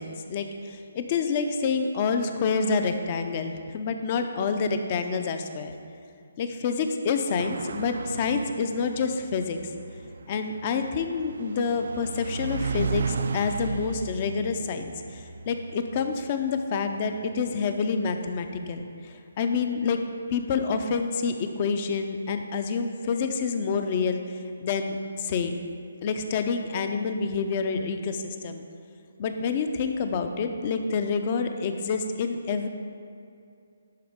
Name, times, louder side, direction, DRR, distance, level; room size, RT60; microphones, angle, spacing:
voice 1, 0.0-5.7 6.4-9.6 10.3-20.0 20.3-25.6 26.0-28.7 29.2-32.7, left 5 dB, 35° left, 7 dB, 0.5 m, -28 dB
sound 1, 7.4-18.3, right 5 dB, 65° right, 0.3 m, -35 dB
11.0 x 3.9 x 3.6 m, 2.4 s
hypercardioid pair, 150°, 0 cm